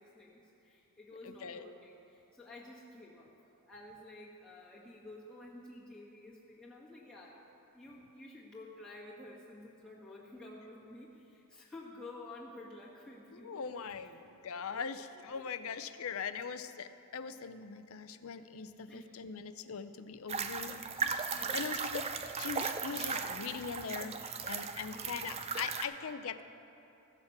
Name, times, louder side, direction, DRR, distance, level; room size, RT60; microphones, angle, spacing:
voice 1, 0.0-3.3 3.7-7.4 7.7-14.0 14.7-14.8 15.3-15.4 18.2-18.3 18.9-19.3 20.3-20.6 21.3-21.7 24.8-25.3, left 2 dB, 5° left, -7 dB, 1.8 m, -51 dB
voice 2, 1.2-1.7 13.3-22.0 22.4-26.4, left 6 dB, 65° left, 11 dB, 0.5 m, -41 dB
sound 1, 20.3-25.8, right 5 dB, 25° right, 0.4 m, -37 dB
15.0 x 6.5 x 7.2 m, 3.0 s
head